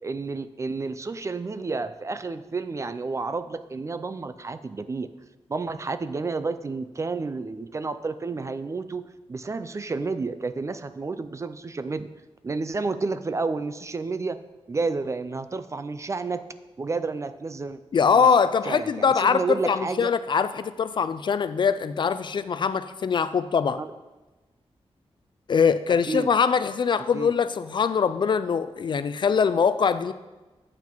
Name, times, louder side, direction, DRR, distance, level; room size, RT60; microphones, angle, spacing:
voice 1, 0.0-5.1 5.5-12.1 12.4-14.4 14.7-16.4 16.8-17.8 18.1-18.3 18.6-20.1 23.8-23.9 26.0-26.3 27.0-27.3, right 3 dB, 30° right, 12 dB, 0.3 m, -30 dB
voice 2, 17.9-23.8 25.5-30.1, left 6 dB, 50° left, 13 dB, 0.4 m, -23 dB
8.8 x 5.9 x 4.5 m, 1.2 s
wide cardioid pair, 150°, 11 cm